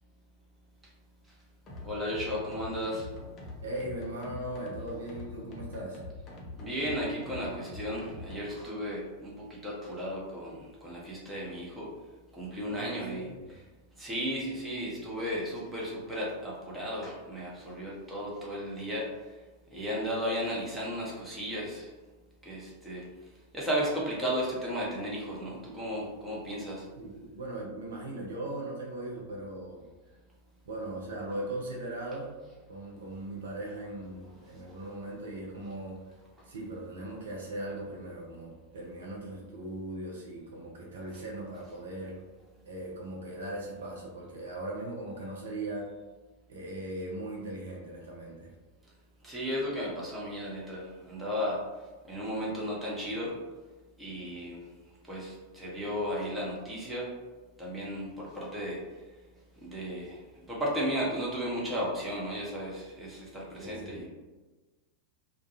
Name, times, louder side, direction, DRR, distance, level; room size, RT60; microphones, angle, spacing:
sound 1, 1.7-8.5, left 2 dB, 30° left, 0.5 m, -44 dB
voice 1, 1.8-3.1 6.5-11.9 12.3-13.6 14.0-19.1 19.7-21.9 22.4-23.0 23.5-26.9 34.6-34.8 49.2-51.6 52.1-53.4 54.0-54.7 55.1-57.1 57.6-58.8 59.6-60.2 60.5-64.1, equal, 10° right, -6 dB, 0.8 m, -34 dB
voice 2, 3.6-6.0 12.6-13.5 27.0-29.8 30.6-32.4 32.7-36.0 36.4-42.2 42.6-45.9 46.5-48.5 63.5-64.0, right 1 dB, 65° right, -2 dB, 0.5 m, -39 dB
2.3 x 2.1 x 2.8 m, 1.2 s
figure-of-eight pair, 90°, 0 cm